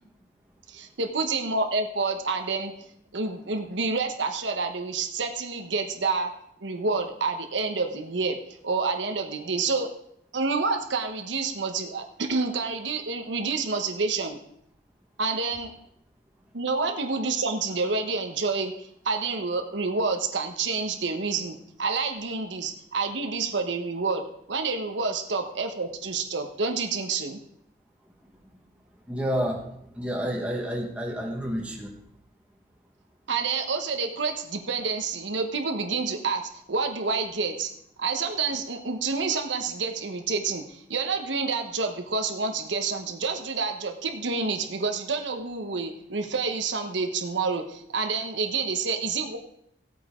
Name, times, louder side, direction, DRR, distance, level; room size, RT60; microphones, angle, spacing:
voice 1, 0.7-2.7 3.1-6.3 6.6-8.4 8.6-9.9 10.3-14.4 15.2-15.7 16.5-18.7 19.0-24.2 24.5-27.4 33.3-36.4 36.7-37.7 38.0-49.4, right 4 dB, 80° right, 5 dB, 1.1 m, -28 dB
voice 2, 29.1-29.7 29.9-31.9, equal, 5° right, -1 dB, 1.5 m, -29 dB
16.0 x 8.7 x 3.7 m, 0.73 s
head